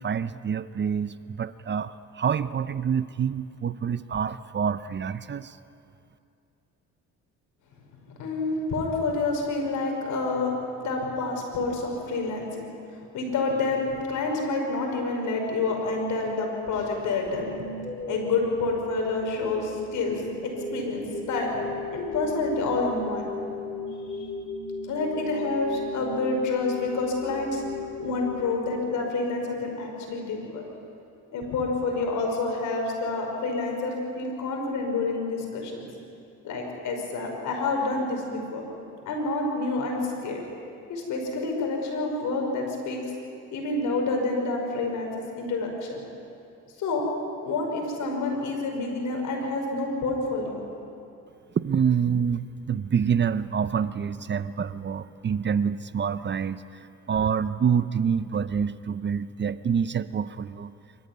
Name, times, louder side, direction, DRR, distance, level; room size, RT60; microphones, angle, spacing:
voice 1, 0.0-5.6 51.5-60.7, right 7 dB, 35° right, 14 dB, 0.7 m, -27 dB
voice 2, 8.1-12.7 13.1-17.7 18.1-21.5 21.9-23.3 24.1-24.3 24.8-27.6 28.0-30.6 31.3-35.9 36.4-38.6 39.0-40.4 40.9-43.0 43.5-46.0 46.8-47.0 47.4-50.7, left 3 dB, 80° left, 1 dB, 5.6 m, -28 dB
sound 1, 17.3-29.3, left 3 dB, 20° left, 3.3 m, -35 dB
26.0 x 14.5 x 9.7 m, 2.6 s
cardioid pair, 90°, 30 cm